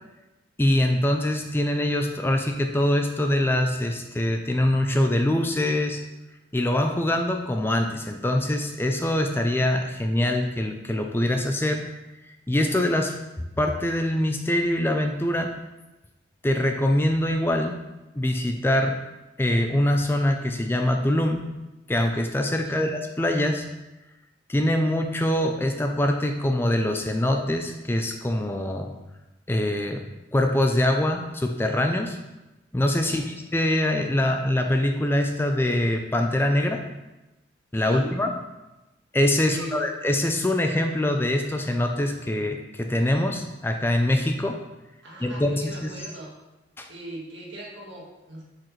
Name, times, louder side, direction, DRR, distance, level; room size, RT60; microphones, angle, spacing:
voice 1, 0.6-6.0 6.5-11.8 12.5-13.2 13.6-15.5 16.4-17.8 18.1-19.0 19.4-21.4 21.9-23.7 24.5-28.9 29.5-30.0 30.3-32.2 32.7-36.8 37.7-38.3 39.1-44.6 45.2-45.5 45.8-45.9 46.8-46.9, left 1 dB, 10° left, 4 dB, 0.4 m, -24 dB
voice 2, 37.7-38.1 39.4-39.9 45.0-46.3 46.9-48.4, right 1 dB, 75° right, -3 dB, 1.7 m, -39 dB
7.5 x 4.9 x 3.1 m, 1.0 s
head